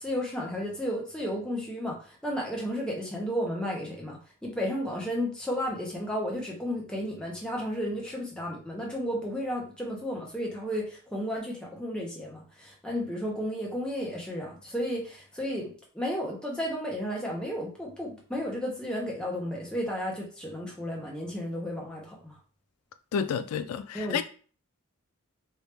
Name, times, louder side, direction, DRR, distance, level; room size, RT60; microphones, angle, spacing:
voice 1, 0.0-22.4 23.9-24.2, equal, 5° left, 0.8 m, -33 dB
voice 2, 23.1-24.2, left 7 dB, 80° left, 0.3 m, -30 dB
3.3 x 2.7 x 3.2 m
head